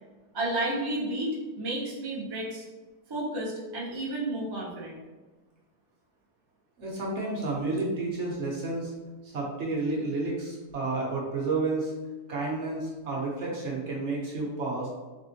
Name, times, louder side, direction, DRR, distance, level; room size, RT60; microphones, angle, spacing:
voice 1, 0.3-2.6 3.1-5.0, right 1 dB, 30° right, -5 dB, 0.4 m, -31 dB
voice 2, 6.8-8.9 9.2-11.9 12.3-14.9, right 3 dB, 55° right, -3 dB, 1.0 m, -31 dB
3.5 x 3.5 x 2.8 m, 1.3 s
omnidirectional pair, 1.7 m